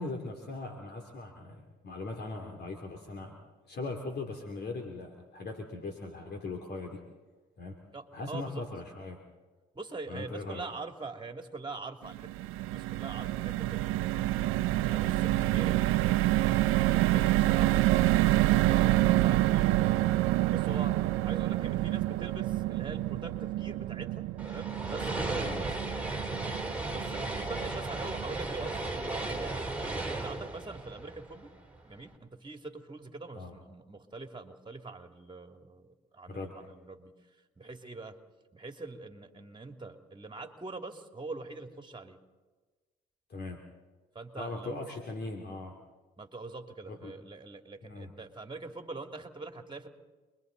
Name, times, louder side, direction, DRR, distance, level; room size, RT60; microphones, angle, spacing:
voice 1, 0.0-3.3 3.6-7.0 7.6-7.8 8.1-9.2 10.1-10.6 25.4-25.7 33.3-33.6 36.3-36.7 43.3-43.6 44.4-45.7 46.9-47.1 47.8-48.1, left 3 dB, 50° left, 3 dB, 2.9 m, -39 dB
voice 2, 7.9-8.6 9.7-25.6 26.2-26.5 26.9-31.5 31.8-37.1 37.6-38.2 38.5-42.2 44.1-44.9 46.2-49.9, right 3 dB, 20° right, 5 dB, 2.8 m, -44 dB
sound 1, 12.0-28.3 28.7-28.9 29.1-29.4, right 16 dB, 85° right, 0.7 m, -27 dB
sound 2, 24.4-31.8, right 2 dB, 5° right, 3.9 m, -35 dB
28.5 x 22.5 x 4.1 m, 1.3 s
supercardioid pair, 65°, 21 cm